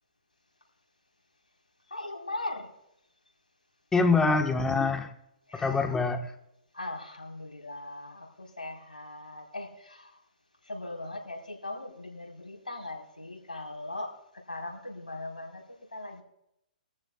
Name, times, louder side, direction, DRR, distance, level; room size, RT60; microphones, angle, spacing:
voice 1, 1.9-2.7 5.5-5.9 6.7-10.2 10.6-14.1 14.5-16.2, left 2 dB, 85° left, 0 dB, 4.1 m, -39 dB
voice 2, 3.9-5.1 5.5-6.3, left 3 dB, 10° left, 6 dB, 1.2 m, -25 dB
23.0 x 14.0 x 2.3 m, 0.81 s
figure-of-eight pair, 125°, 5 cm